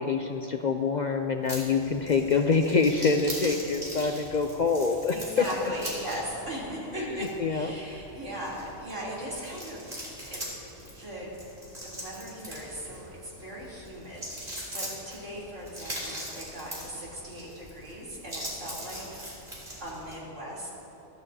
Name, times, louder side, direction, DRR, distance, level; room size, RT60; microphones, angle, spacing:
voice 1, 0.0-5.2 7.0-7.1 7.4-7.7, left 4 dB, 50° left, 5 dB, 0.5 m, -26 dB
sound 1, 1.4-20.2, equal, 45° right, 3.5 m, -41 dB
voice 2, 5.1-9.9 10.3-10.4 10.9-11.3 11.8-19.2 19.8-20.7, right 1 dB, 85° right, -6 dB, 3.6 m, -38 dB
22.0 x 13.0 x 2.8 m, 2.9 s
omnidirectional pair, 1.2 m